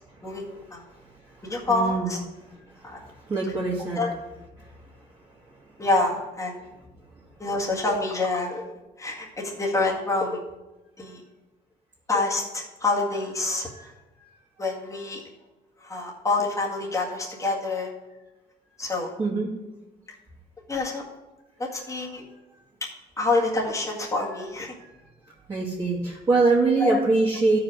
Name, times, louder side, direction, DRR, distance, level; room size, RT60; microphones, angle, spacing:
voice 1, 0.2-0.8 1.4-2.2 2.8-3.0 3.9-4.1 5.8-6.6 7.4-8.7 9.0-10.4 11.0-11.2 12.1-13.7 14.6-15.2 15.8-17.9 18.8-19.1 20.7-21.0 21.6-22.2 23.2-24.7 26.8-27.0, left 3 dB, 20° left, -3 dB, 1.8 m, -27 dB
voice 2, 1.4-2.1 2.5-2.6 3.3-4.0 4.6-4.7 13.7-13.8 14.2-14.3 19.2-19.5 25.5-27.6, right 3 dB, 25° right, -6 dB, 2.0 m, -24 dB
12.5 x 4.9 x 4.9 m, 1.1 s
cardioid pair, 110°, 17 cm